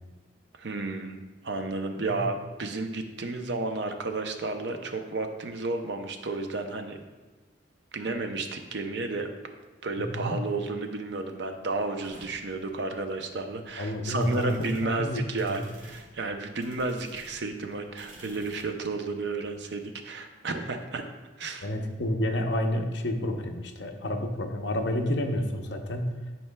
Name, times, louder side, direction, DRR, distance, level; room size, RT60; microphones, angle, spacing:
voice 1, 0.6-7.0 7.9-9.3 9.8-21.1 21.4-21.7, right 3 dB, 60° right, 6 dB, 0.6 m, -32 dB
voice 2, 10.0-10.4 13.8-14.5 14.8-15.2 15.5-15.6 21.6-26.1, left 1 dB, 60° left, 4 dB, 0.7 m, -29 dB
sound 1, 12.0-18.7, right 1 dB, 85° right, 1.9 m, -52 dB
10.0 x 4.5 x 2.2 m, 1.3 s
head